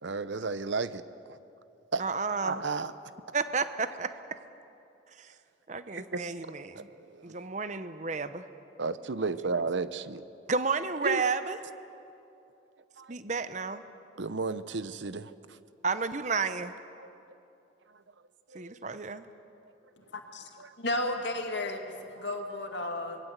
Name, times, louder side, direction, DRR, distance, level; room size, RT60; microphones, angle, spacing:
voice 1, 0.0-1.0 1.9-2.0 2.4-2.9 5.9-6.2 6.8-6.9 7.1-7.4 8.8-10.2 11.0-11.2 13.0-13.2 14.2-15.3 17.0-17.1 18.5-18.8 20.6-20.7 22.2-22.3, right 3 dB, 70° right, 14 dB, 0.8 m, -33 dB
voice 2, 2.0-2.6 3.3-4.1 5.7-6.9 7.2-8.4 10.5-11.6 13.1-13.8 15.8-16.7 18.5-19.3, right 4 dB, 40° right, 11 dB, 0.8 m, -31 dB
voice 3, 20.1-20.4 20.8-21.8 22.1-23.2, left 1 dB, 65° left, 4 dB, 2.2 m, -33 dB
25.0 x 21.0 x 8.1 m, 2.8 s
head